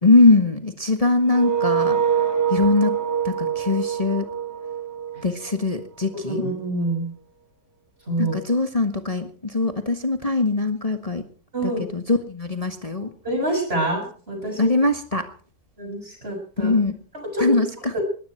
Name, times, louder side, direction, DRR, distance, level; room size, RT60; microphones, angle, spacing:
voice 1, 0.0-2.0 2.5-3.0 3.2-4.3 5.2-6.4 8.2-11.2 11.6-13.1 14.6-15.2 16.6-16.9 17.4-17.9, left 3 dB, 20° left, 7 dB, 1.4 m, -21 dB
sound 1, 1.3-6.1, right 8 dB, 10° right, 1.0 m, -25 dB
voice 2, 6.3-7.1 8.1-8.3 11.5-11.9 13.2-14.7 15.8-16.7 17.1-17.4 17.9-18.0, right 1 dB, 30° right, 3 dB, 6.6 m, -26 dB
20.5 x 15.0 x 4.5 m, 0.42 s
omnidirectional pair, 1.9 m